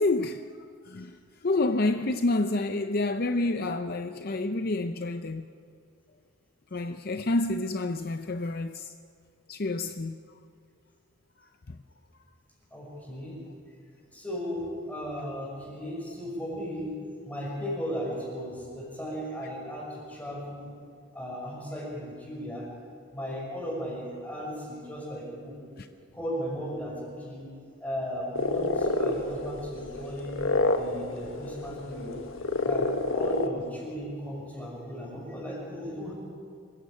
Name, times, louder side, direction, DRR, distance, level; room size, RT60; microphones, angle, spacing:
voice 1, 0.0-5.5 6.7-8.9 9.5-10.2 11.7-11.8 25.1-25.2 25.8-25.9 33.4-33.5, left 2 dB, 45° left, 0.6 m, -29 dB
voice 2, 12.7-13.4 14.1-16.9 17.2-20.7 21.1-22.7 23.1-25.6 26.1-27.5 27.8-30.3 30.8-32.2 32.6-36.1, equal, 5° left, 5.6 m, -36 dB
sound 1, 28.4-33.5, left 2 dB, 70° left, 1.5 m, -29 dB
26.0 x 15.5 x 8.5 m
head